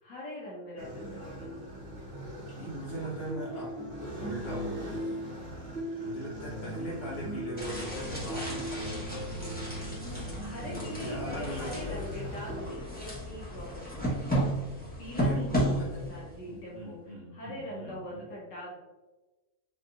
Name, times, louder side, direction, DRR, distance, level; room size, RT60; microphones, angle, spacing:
voice 1, 0.0-1.6 10.0-14.3 15.0-15.7 16.1-17.0 17.3-18.8, left 1 dB, 75° left, -5 dB, 1.7 m, -42 dB
sound 1, 0.8-12.7, equal, 30° right, 1.1 m, -39 dB
voice 2, 2.6-5.3 6.0-9.9 11.0-11.7 15.2-18.3, right 1 dB, 40° left, -6 dB, 1.7 m, -40 dB
sound 2, 7.6-16.4, right 1 dB, 5° left, 0.9 m, -34 dB
4.6 x 3.6 x 2.5 m, 1.1 s
omnidirectional pair, 2.0 m